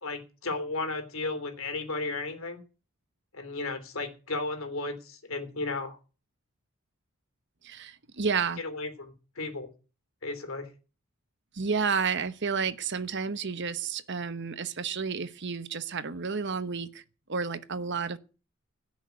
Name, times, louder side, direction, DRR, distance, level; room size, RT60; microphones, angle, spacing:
voice 1, 0.0-2.6 3.3-6.0 8.6-9.7 10.2-10.7, left 3 dB, 70° left, 3.2 m, -34 dB
voice 2, 7.6-8.6 11.5-17.0 17.3-18.2, right 5 dB, 55° right, 1.1 m, -31 dB
17.0 x 6.4 x 9.5 m
head